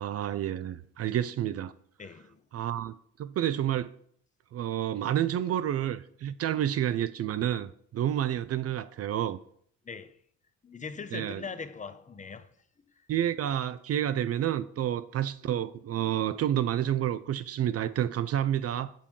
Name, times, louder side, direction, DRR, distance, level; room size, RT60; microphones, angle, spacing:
voice 1, 0.0-1.7 2.5-3.9 4.5-9.4 11.1-11.4 13.1-18.9, right 11 dB, 50° right, 0.4 m, -29 dB
voice 2, 2.0-2.4 9.8-10.2 10.6-12.5, left 5 dB, 25° left, 0.6 m, -41 dB
6.7 x 5.2 x 5.4 m
cardioid pair, 90°, 30 cm